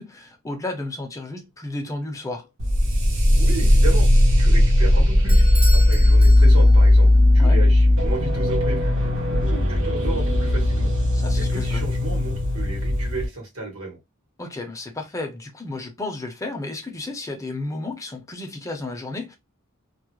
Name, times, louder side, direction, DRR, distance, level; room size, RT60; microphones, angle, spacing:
voice 1, 0.0-2.5 7.4-7.6 11.1-11.8 14.4-19.4, left 2 dB, 15° left, 0.5 m, -32 dB
sound 1, 2.6-13.3, left 1 dB, 65° right, 0.7 m, -17 dB
voice 2, 3.3-4.1 4.4-5.4 5.7-10.9 11.3-14.0, right 2 dB, 80° right, 1.1 m, -33 dB
Bell / Doorbell, 5.3-7.0, right 1 dB, 25° right, 0.7 m, -35 dB
2.3 x 2.0 x 2.9 m
head